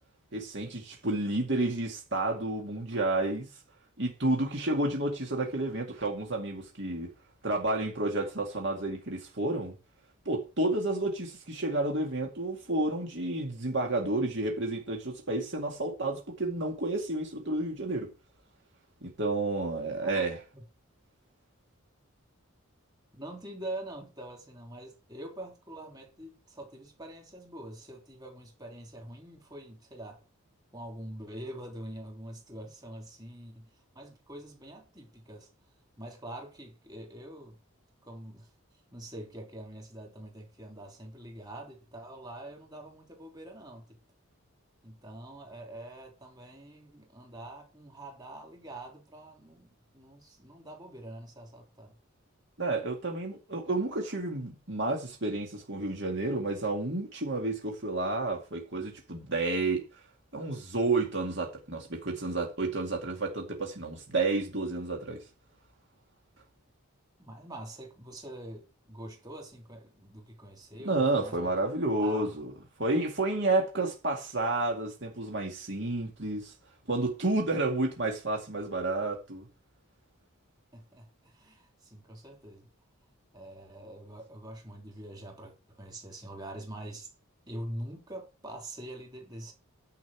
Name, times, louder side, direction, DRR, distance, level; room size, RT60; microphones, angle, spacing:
voice 1, 0.3-3.5 4.0-7.1 7.4-9.7 10.3-18.1 19.0-20.4 52.6-59.8 60.3-65.2 70.8-72.5 72.8-76.5 76.9-79.5, right 2 dB, 55° right, 2.3 m, -30 dB
voice 2, 23.1-30.2 30.7-33.7 33.9-35.5 36.0-37.6 38.0-38.5 38.9-43.8 44.8-51.9 67.2-71.5 72.0-72.3 80.7-82.7 83.3-87.1 87.5-89.5, right 1 dB, 20° right, 3.3 m, -44 dB
11.0 x 5.3 x 7.5 m
head